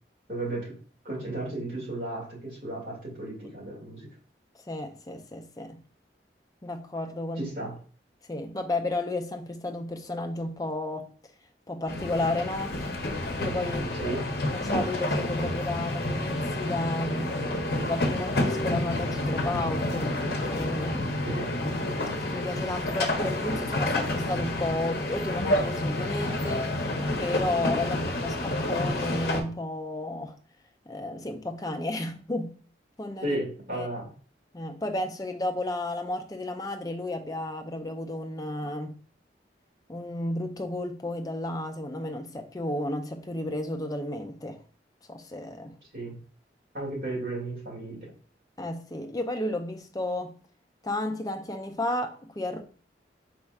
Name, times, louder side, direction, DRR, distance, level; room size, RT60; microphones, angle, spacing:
voice 1, 0.3-0.7 1.0-4.1 7.4-7.8 13.9-14.2 21.2-21.5 33.2-34.1 45.9-46.2 46.7-48.1, right 2 dB, 50° right, 2.2 m, -34 dB
voice 2, 4.7-5.8 6.6-7.5 8.3-11.1 11.7-12.8 13.4-14.0 14.5-17.4 17.8-20.1 20.4-21.1 22.2-26.8 27.2-30.3 30.9-32.5 33.0-33.4 33.7-33.9 34.5-38.9 39.9-44.6 45.1-45.8 48.6-50.4 50.8-52.6, left 1 dB, 20° left, 0.4 m, -32 dB
sound 1, 11.9-29.4, left 1 dB, 55° left, 0.7 m, -29 dB
4.3 x 4.2 x 2.4 m
head